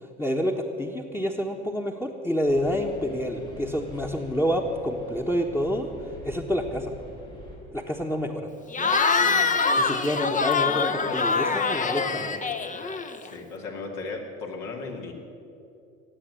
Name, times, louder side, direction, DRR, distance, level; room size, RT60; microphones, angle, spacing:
voice 1, 0.2-5.9 6.2-6.9 7.7-8.5 9.8-12.6, equal, 10° left, -1 dB, 1.5 m, -28 dB
sound 1, 2.5-7.6, equal, 80° left, 4.6 m, -45 dB
Cheering / Crowd, 8.7-13.3, left 4 dB, 25° left, 1.0 m, -24 dB
voice 2, 9.2-9.9 13.2-15.1, left 3 dB, 65° left, 1 dB, 2.6 m, -37 dB
18.0 x 7.9 x 10.0 m, 2.7 s
figure-of-eight pair, 60°, 32 cm